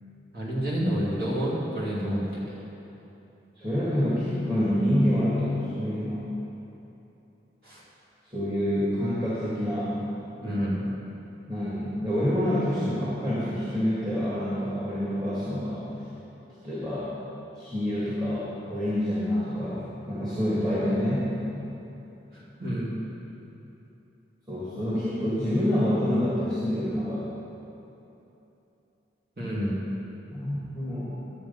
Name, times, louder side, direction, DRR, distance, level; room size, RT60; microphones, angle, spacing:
voice 1, 0.3-2.4 7.6-7.8 10.4-10.9 22.6-22.9 29.4-29.7, equal, 55° right, -7 dB, 2.9 m, -28 dB
voice 2, 3.6-6.3 8.2-10.0 11.5-15.8 16.6-17.1 17.6-21.3 24.5-27.2 30.3-31.1, equal, 20° right, -9 dB, 1.9 m, -27 dB
12.5 x 7.6 x 5.5 m, 3.0 s
head